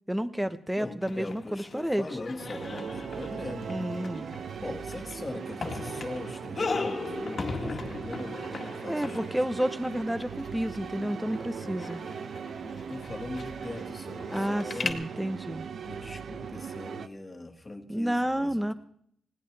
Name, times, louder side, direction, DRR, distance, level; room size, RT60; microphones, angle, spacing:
voice 1, 0.1-2.1 3.7-4.3 8.9-12.0 14.3-15.7 17.9-18.7, equal, 5° right, 11 dB, 1.1 m, -30 dB
voice 2, 0.8-3.8 4.6-9.4 12.6-15.0 15.9-18.7, left 2 dB, 20° left, 5 dB, 2.1 m, -41 dB
sound 1, 1.0-14.9, left 4 dB, 40° left, 1.9 m, -39 dB
sound 2, 2.4-17.1, right 6 dB, 65° right, 0.9 m, -39 dB
20.5 x 17.5 x 3.5 m, 0.65 s
cardioid pair, 105°, 0 cm